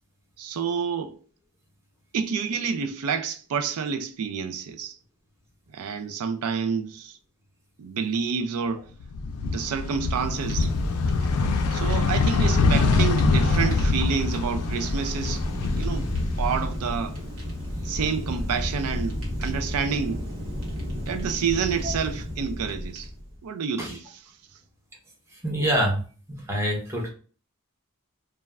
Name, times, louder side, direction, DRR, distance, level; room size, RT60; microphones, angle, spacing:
voice 1, 0.4-1.1 2.1-5.0 5.7-7.2 7.8-8.9 9.4-10.7 11.7-15.4 15.7-16.1 16.4-17.2 17.8-20.2 21.1-23.1 23.4-24.2, right 6 dB, 85° right, 0.4 m, -28 dB
sound 1, 9.0-17.1 17.5-18.7, left 3 dB, 75° left, 0.4 m, -24 dB
Fire, 9.8-23.4, equal, 65° right, 1.0 m, -32 dB
voice 2, 25.4-26.0 26.3-27.1, equal, 10° right, 0.6 m, -25 dB
2.3 x 2.2 x 3.1 m
head